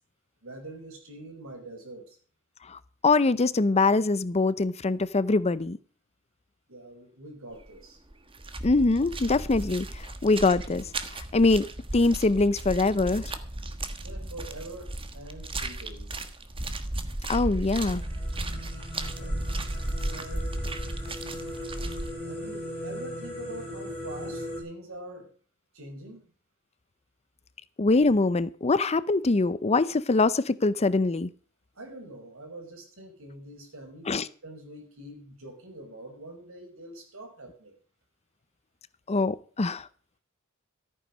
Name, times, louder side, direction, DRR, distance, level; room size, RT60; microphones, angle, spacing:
voice 1, 0.4-2.2 6.7-8.0 14.0-16.2 19.2-19.4 20.1-20.7 22.2-25.3 25.7-26.3 31.8-37.8, right 1 dB, 65° right, 3 dB, 5.6 m, -44 dB
voice 2, 2.7-5.8 8.6-10.8 11.1-13.3 17.3-18.0 27.8-31.3 34.1-34.3 39.1-39.9, left 3 dB, 30° left, 17 dB, 0.6 m, -23 dB
sound 1, 7.6-7.8 8.1-22.1, right 1 dB, 25° right, 1.3 m, -35 dB
sound 2, 17.8-24.6, left 1 dB, 10° left, 6.6 m, -38 dB
14.0 x 9.4 x 6.3 m, 0.42 s
head